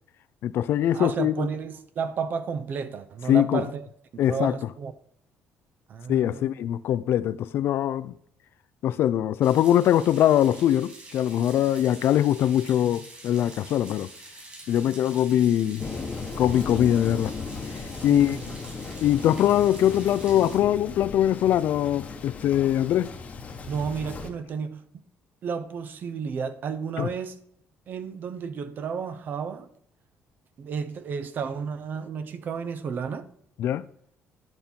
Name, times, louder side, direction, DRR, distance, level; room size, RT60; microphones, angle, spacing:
voice 1, 0.4-1.5 3.3-3.6 4.2-4.5 6.1-8.1 8.8-14.1 14.7-15.8 16.4-17.3 18.0-18.4 19.0-23.1 27.0-27.1 33.6-33.9, left 11 dB, 60° left, 0.4 m, -22 dB
voice 2, 0.9-3.9 4.1-4.9 5.9-6.5 18.1-18.4 23.7-25.0 25.4-27.4 27.9-29.7 30.6-33.2, right 6 dB, 45° right, 0.7 m, -32 dB
sound 1, 9.4-20.6, right 2 dB, 30° right, 3.1 m, -46 dB
Thunder, 15.8-24.3, left 4 dB, 30° left, 1.0 m, -36 dB
10.5 x 5.4 x 4.4 m
cardioid pair, 150°, 4 cm